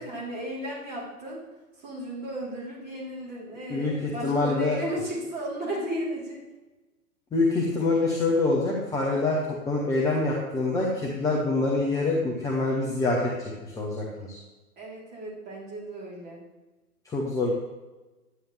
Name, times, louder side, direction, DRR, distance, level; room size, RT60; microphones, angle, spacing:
voice 1, 0.0-1.4 1.8-6.4 14.8-16.4, right 1 dB, 20° right, -6 dB, 3.5 m, -35 dB
voice 2, 3.7-4.8 7.3-14.4 17.0-17.5, left 2 dB, 5° left, -3 dB, 0.9 m, -26 dB
10.5 x 9.4 x 3.3 m, 1.1 s
figure-of-eight pair, 120°, 46 cm